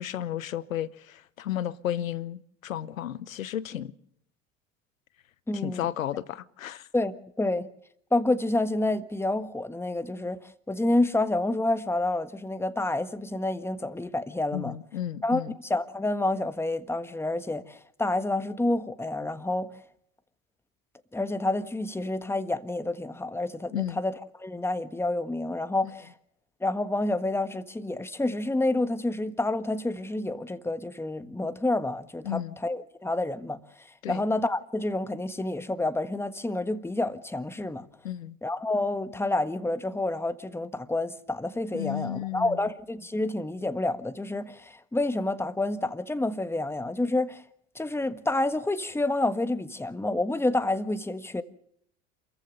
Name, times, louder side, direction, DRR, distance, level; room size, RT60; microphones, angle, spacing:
voice 1, 0.0-3.9 5.5-6.9 14.5-15.5 23.7-24.0 32.2-32.6 34.0-34.2 38.0-38.4 41.7-42.6, left 11 dB, 90° left, 0.9 m, -33 dB
voice 2, 5.5-5.9 6.9-7.7 8.1-10.4 10.7-14.8 15.2-19.7 21.1-26.1 26.6-33.6 34.1-37.9 38.4-47.4 47.7-51.4, left 2 dB, 5° left, 1.5 m, -28 dB
27.5 x 15.0 x 6.6 m
hypercardioid pair, 75°, 39 cm